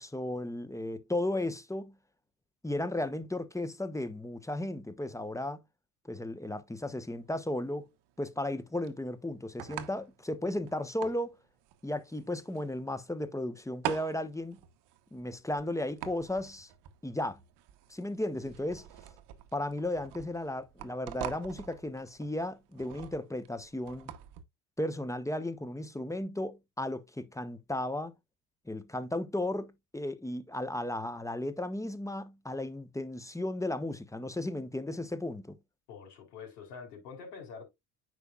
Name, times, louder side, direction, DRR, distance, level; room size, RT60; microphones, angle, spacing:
voice 1, 0.0-1.9 2.6-5.6 6.0-7.9 8.2-11.4 11.8-14.6 15.1-16.7 17.0-17.4 17.9-18.9 19.5-24.1 24.8-28.1 28.7-35.6, left 1 dB, 5° left, 1.1 m, -35 dB
sound 1, 6.7-24.4, right 13 dB, 60° right, 1.2 m, -45 dB
voice 2, 35.9-37.6, left 5 dB, 80° left, 4.5 m, -46 dB
9.4 x 5.6 x 2.4 m
hypercardioid pair, 65°, 47 cm